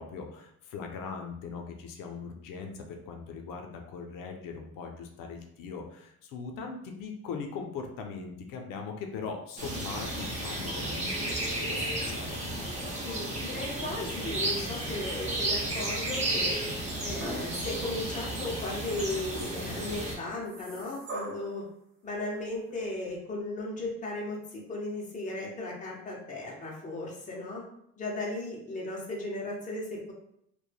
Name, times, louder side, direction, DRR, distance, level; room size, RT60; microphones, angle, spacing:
voice 1, 0.0-12.4, left 5 dB, 85° left, 3 dB, 0.5 m, -40 dB
sound 1, 9.6-20.1, right 1 dB, 20° right, 0.7 m, -33 dB
voice 2, 13.0-16.6 17.0-21.6 22.0-24.4 24.7-27.6 28.0-30.1, left 2 dB, 25° left, -3 dB, 0.6 m, -36 dB
sound 2, 15.6-16.2 17.2-18.0 18.5-18.6 20.2-21.6 22.7-22.8, right 1 dB, 55° right, 1.0 m, -42 dB
3.0 x 2.1 x 2.2 m, 0.73 s
cardioid pair, 150°, 32 cm